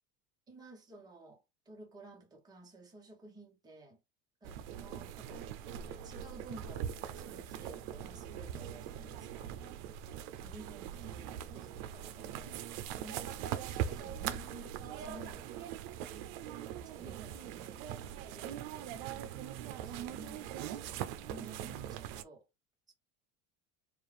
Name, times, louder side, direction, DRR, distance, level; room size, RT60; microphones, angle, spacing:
voice 1, 0.5-4.0 4.4-5.5 5.9-9.5 10.4-15.7 16.4-19.0 19.5-22.5 22.9-23.0, right 2 dB, 10° right, 1.3 m, -54 dB
sound 1, 4.4-22.2, right 10 dB, 70° right, 0.7 m, -41 dB
4.5 x 2.5 x 3.4 m
cardioid pair, 155°, 32 cm